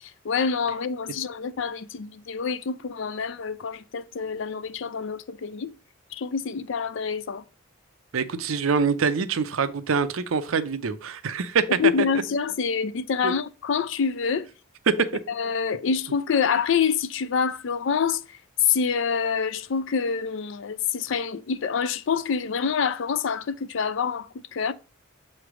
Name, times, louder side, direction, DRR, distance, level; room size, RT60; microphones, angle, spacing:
voice 1, 0.2-5.7 6.1-7.4 11.8-14.5 15.4-18.2 18.6-24.7, left 6 dB, 60° left, 0.4 m, -26 dB
voice 2, 8.1-11.9 13.2-13.3 14.9-15.0, right 5 dB, 75° right, 0.6 m, -24 dB
6.9 x 3.2 x 4.8 m
head